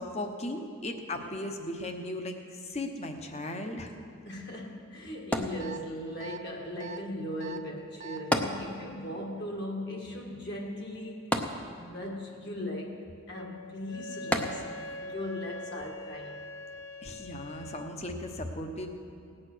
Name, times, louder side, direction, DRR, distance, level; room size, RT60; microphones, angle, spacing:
voice 1, 0.0-4.0 17.0-18.9, left 1 dB, 30° left, 5 dB, 1.0 m, -37 dB
voice 2, 4.2-11.3 11.8-14.7 15.0-16.4, left 1 dB, 50° left, 0 dB, 1.8 m, -38 dB
sound 1, 5.3-6.2 8.3-9.2 9.5-9.6 11.3-12.1 14.3-15.0 15.7-15.8, left 1 dB, 5° left, 0.6 m, -31 dB
sound 2, 5.6-5.8 6.2-6.4 6.8-7.0 7.4-7.6 8.0-8.2, right 7 dB, 35° right, 0.4 m, -42 dB
Wind instrument woodwind instrument, 13.3-18.0, left 1 dB, 70° left, 0.6 m, -43 dB
18.0 x 8.8 x 6.2 m, 2.4 s
head